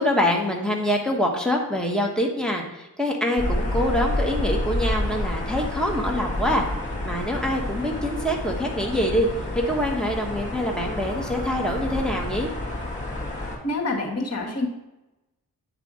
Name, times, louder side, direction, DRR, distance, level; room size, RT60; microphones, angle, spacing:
voice 1, 0.0-6.6 7.0-9.3 9.5-12.5, equal, ahead, 0 dB, 1.5 m, -25 dB
sound 1, 3.4-13.6, left 1 dB, 20° left, 2.1 m, -29 dB
voice 2, 13.6-14.7, left 2 dB, 40° left, -1 dB, 2.0 m, -26 dB
9.1 x 3.4 x 5.1 m, 0.98 s
cardioid pair, 70°, 38 cm